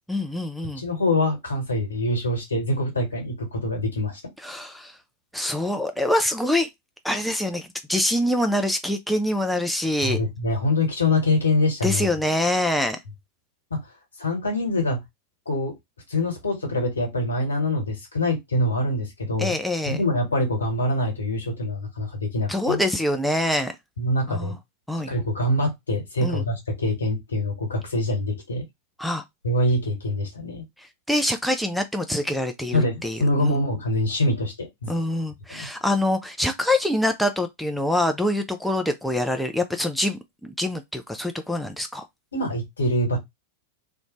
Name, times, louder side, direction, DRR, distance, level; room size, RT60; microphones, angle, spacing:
voice 1, 0.1-0.8 4.4-5.0 5.3-6.7 7.0-10.2 11.8-13.0 19.4-20.0 22.5-23.8 24.3-24.6 24.9-25.1 26.2-26.4 29.0-29.2 31.1-33.6 34.9-42.1, left 1 dB, ahead, 0.3 m, -25 dB
voice 2, 0.8-4.2 10.0-12.1 13.7-13.8 14.2-15.0 15.5-15.7 16.1-19.6 19.9-22.8 24.0-24.5 25.1-28.6 29.4-30.6 32.7-34.9 35.5-35.7 42.3-43.2, left 1 dB, 75° left, 1.1 m, -24 dB
2.5 x 2.1 x 2.9 m
figure-of-eight pair, 90°, 0 cm